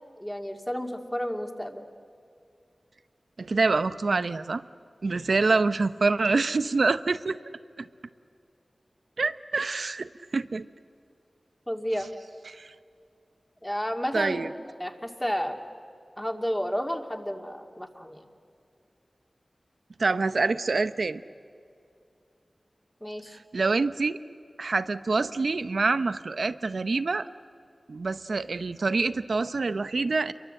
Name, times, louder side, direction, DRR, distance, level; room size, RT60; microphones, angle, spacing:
voice 1, 0.2-1.9 11.7-12.1 13.6-14.5 14.8-15.6 16.2-18.2 23.0-23.4, equal, 10° left, 4 dB, 2.2 m, -31 dB
voice 2, 3.4-4.6 5.0-7.4 7.8-7.9 9.2-10.7 12.5-12.7 14.1-14.5 20.0-21.2 23.5-24.2 24.6-27.3 27.9-30.3, right 3 dB, 75° right, 13 dB, 0.8 m, -26 dB
29.0 x 23.5 x 7.7 m, 2.5 s
wide cardioid pair, 80°, 0 cm